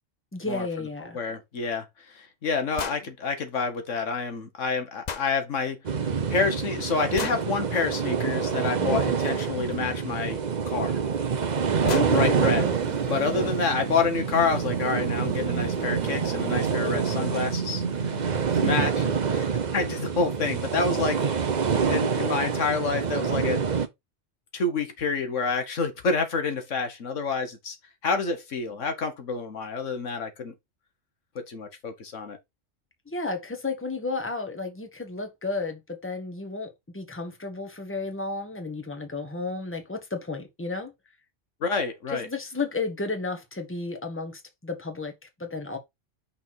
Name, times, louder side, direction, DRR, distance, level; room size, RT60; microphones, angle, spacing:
voice 1, 0.3-1.2 8.8-9.0 11.8-12.4 13.1-13.5 18.6-18.9 33.0-40.9 42.1-45.8, left 3 dB, 10° left, 1.4 m, -32 dB
voice 2, 1.1-5.8 6.3-11.0 12.1-12.6 13.1-21.4 21.9-23.6 24.5-27.8 28.0-30.5 31.3-32.4 41.6-42.3, left 4 dB, 75° left, 1.6 m, -28 dB
sound 1, 2.8-3.1 5.1-5.3 7.2-7.5 9.7-9.8 11.1-11.2 11.6-11.7 11.9-12.2, left 7 dB, 45° left, 0.6 m, -33 dB
sound 2, 5.8-23.9, right 6 dB, 40° right, 0.8 m, -27 dB
sound 3, 12.1-18.9, right 6 dB, 70° right, 1.3 m, -33 dB
5.9 x 4.1 x 4.5 m
omnidirectional pair, 1.3 m